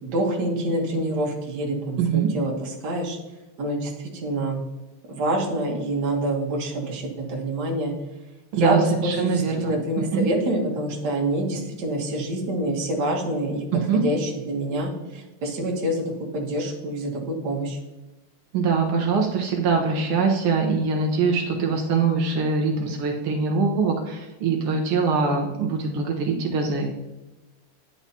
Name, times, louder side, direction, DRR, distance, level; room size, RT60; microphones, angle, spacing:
voice 1, 0.0-3.2 3.6-4.6 5.1-7.9 8.5-13.7 13.9-17.8, right 1 dB, 55° right, -1 dB, 1.8 m, -26 dB
voice 2, 2.0-2.3 8.5-10.3 13.7-14.0 18.5-26.9, right 5 dB, 85° right, 1 dB, 1.8 m, -23 dB
10.0 x 4.8 x 2.8 m, 1.1 s
omnidirectional pair, 2.3 m